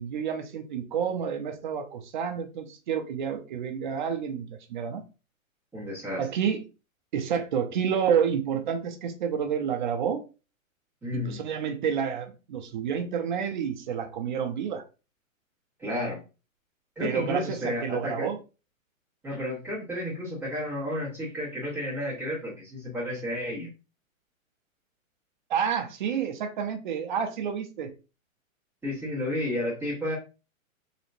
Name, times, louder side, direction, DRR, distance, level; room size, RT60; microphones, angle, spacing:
voice 1, 0.0-5.0 6.2-6.6 7.1-10.2 11.1-14.8 17.0-18.4 25.5-27.9, right 7 dB, 35° right, 6 dB, 0.6 m, -29 dB
voice 2, 5.7-6.3 11.0-11.5 15.8-16.2 17.0-18.3 19.2-23.7 28.8-30.2, left 1 dB, 5° right, -11 dB, 1.7 m, -32 dB
4.2 x 2.9 x 2.6 m, 0.31 s
hypercardioid pair, 155°, 41 cm